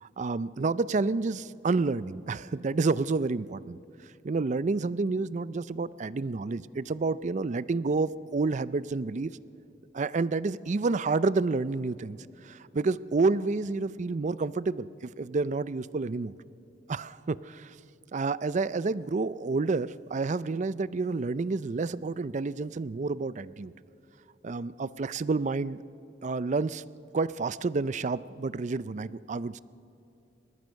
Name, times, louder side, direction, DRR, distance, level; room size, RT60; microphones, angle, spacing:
voice 1, 0.0-3.8 4.2-9.3 9.9-12.2 12.4-16.3 16.9-17.7 18.1-23.7 24.4-25.8 26.2-26.8 27.1-29.6, right 3 dB, 40° right, 18 dB, 0.4 m, -29 dB
30.0 x 13.5 x 6.4 m, 2.7 s
head